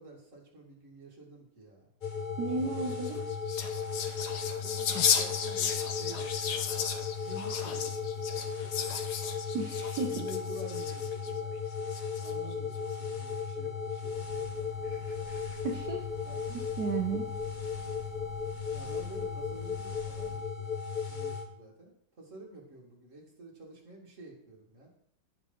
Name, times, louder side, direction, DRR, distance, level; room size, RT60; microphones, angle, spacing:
voice 1, 0.0-1.9 2.5-3.3 4.4-6.7 7.2-9.0 10.1-11.5 12.2-15.3 16.2-16.6 18.7-20.7 21.1-24.9, right 1 dB, 45° right, -1 dB, 2.5 m, -50 dB
sound 1, 2.0-21.5, left 6 dB, 35° left, 0.9 m, -36 dB
voice 2, 2.4-3.2 9.5-10.2 15.6-16.1 16.5-17.3, right 5 dB, 65° right, 2 dB, 1.4 m, -33 dB
sound 2, 2.9-11.3 11.9-12.5, left 7 dB, 70° left, 1.4 m, -34 dB
sound 3, 14.1-20.4, equal, 90° left, 2.1 m, -53 dB
16.0 x 5.6 x 3.9 m, 0.68 s
omnidirectional pair, 1.9 m